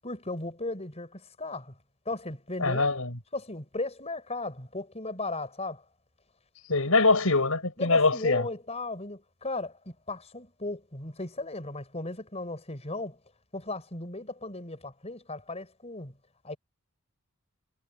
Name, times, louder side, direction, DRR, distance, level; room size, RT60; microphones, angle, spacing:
voice 1, 0.0-1.8 2.1-2.9 3.3-5.8 7.8-13.2 13.5-16.1 16.4-16.6, left 2 dB, 30° left, 5.5 m, -36 dB
voice 2, 2.6-3.1 6.7-8.4, left 3 dB, 75° left, 4.7 m, -23 dB
head